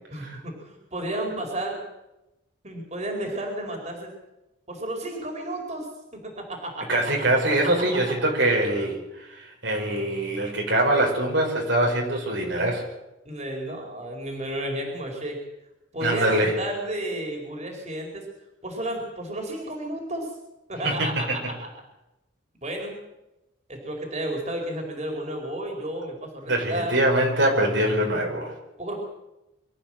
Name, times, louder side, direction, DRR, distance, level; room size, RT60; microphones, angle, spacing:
voice 1, 0.1-1.8 2.6-4.1 4.7-7.0 13.2-15.4 15.9-18.2 18.6-20.3 20.7-21.5 22.6-23.0 23.7-26.9 28.8-29.0, right 1 dB, 35° right, 1 dB, 4.7 m, -32 dB
voice 2, 6.9-12.8 16.0-16.6 20.8-21.1 26.5-28.5, right 1 dB, 65° right, 1 dB, 5.2 m, -23 dB
24.5 x 14.0 x 7.8 m, 0.96 s
head